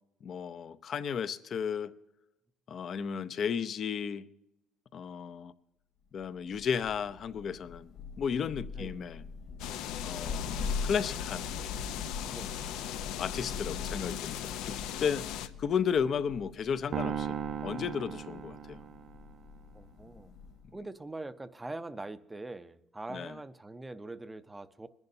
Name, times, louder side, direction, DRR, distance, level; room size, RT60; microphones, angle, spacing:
voice 1, 0.2-1.9 2.7-4.2 4.9-5.5 6.1-9.2 10.0-11.5 12.2-17.4 17.6-18.8 23.1-23.4, left 7 dB, 45° left, 14 dB, 0.6 m, -34 dB
Thunder, 6.2-20.8, left 5 dB, 70° left, 3.2 m, -43 dB
voice 2, 8.8-9.1 12.3-12.6 18.1-18.2 19.7-20.3 20.7-24.9, right 2 dB, 10° right, 12 dB, 0.6 m, -43 dB
sound 1, 9.6-15.5, left 10 dB, 85° left, 0.6 m, -38 dB
sound 2, 16.9-19.3, right 8 dB, 50° right, 0.6 m, -36 dB
22.0 x 11.0 x 2.7 m, 0.91 s
cardioid pair, 135°, 0 cm